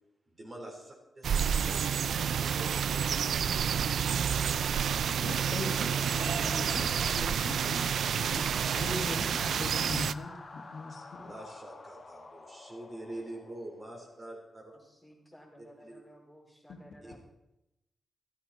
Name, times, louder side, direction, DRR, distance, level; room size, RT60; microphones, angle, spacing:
voice 1, 0.3-3.6 11.2-14.8 15.8-16.0 17.0-17.2, right 1 dB, 35° right, 0 dB, 4.1 m, -46 dB
sound 1, 1.2-10.1, right 8 dB, 85° right, 0.4 m, -29 dB
sound 2, 4.7-14.4, left 3 dB, 35° left, 2.0 m, -49 dB
voice 2, 5.2-11.3 16.7-16.8, left 3 dB, 65° left, 2 dB, 2.1 m, -41 dB
voice 3, 14.7-17.2, equal, ahead, -2 dB, 4.5 m, -56 dB
14.5 x 13.5 x 4.3 m, 0.88 s
wide cardioid pair, 120°, 0 cm